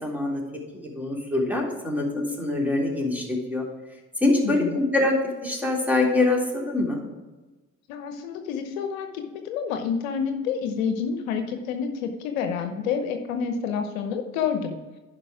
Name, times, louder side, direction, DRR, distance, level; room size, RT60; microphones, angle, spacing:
voice 1, 0.0-0.4 0.7-3.7 4.2-5.1 5.4-7.0, left 2 dB, 5° right, -2 dB, 3.3 m, -24 dB
voice 2, 4.4-4.8 7.9-14.8, left 6 dB, 80° left, 6 dB, 0.9 m, -28 dB
11.0 x 5.5 x 4.8 m, 1.2 s
hypercardioid pair, 50°, 40 cm